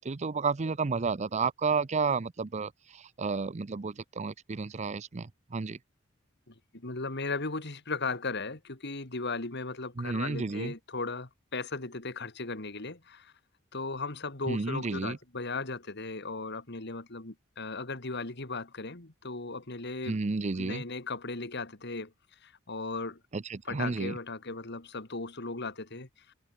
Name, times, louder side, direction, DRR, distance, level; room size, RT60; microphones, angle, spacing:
voice 1, 0.0-5.8 10.0-10.7 14.5-15.2 20.1-20.8 23.3-24.2, right 4 dB, 35° right, 0.5 m, -31 dB
voice 2, 6.5-13.3 13.7-20.2 20.6-22.1 22.4-23.2 23.6-26.3, left 3 dB, 55° left, 2.5 m, -37 dB
head